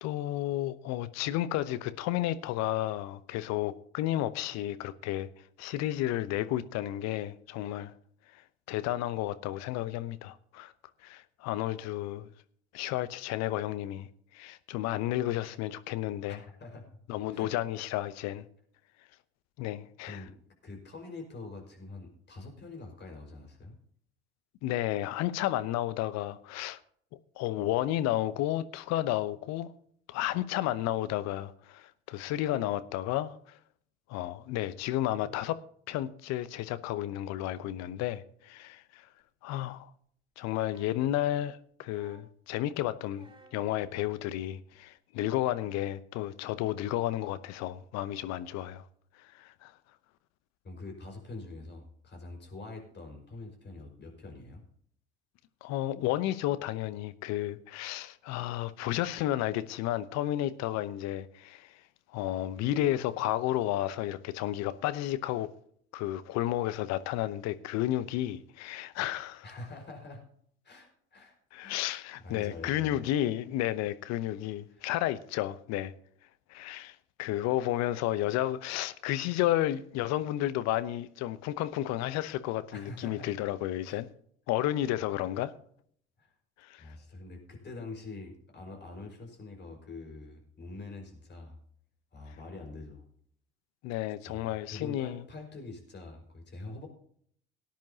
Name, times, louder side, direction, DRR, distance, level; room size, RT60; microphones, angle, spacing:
voice 1, 0.0-5.3 5.6-7.9 8.3-10.7 11.0-12.3 12.7-16.4 17.1-18.4 19.6-20.2 24.6-26.8 27.4-29.7 30.1-33.6 34.1-35.6 35.9-39.1 39.4-39.9 40.4-48.9 49.2-49.7 55.6-61.8 62.1-65.5 65.9-69.4 71.5-75.9 76.5-84.1 84.5-85.5 86.6-86.8 93.8-95.2, left 13 dB, 55° left, 0.9 m, -32 dB
voice 2, 16.3-16.9 17.3-17.5 20.0-20.3 20.6-23.8 50.6-54.6 69.4-70.2 70.6-71.4 71.6-71.8 72.2-73.0 74.7-74.8 82.7-83.3 83.8-84.0 86.2-86.3 86.8-91.6 92.1-93.0 94.2-96.9, left 3 dB, 35° left, 5.2 m, -45 dB
sound 1, 40.5-41.1 41.8-42.4 43.1-43.7 44.9-45.0, right 3 dB, 15° right, 4.6 m, -57 dB
18.5 x 10.5 x 2.8 m
hypercardioid pair, 65°, 31 cm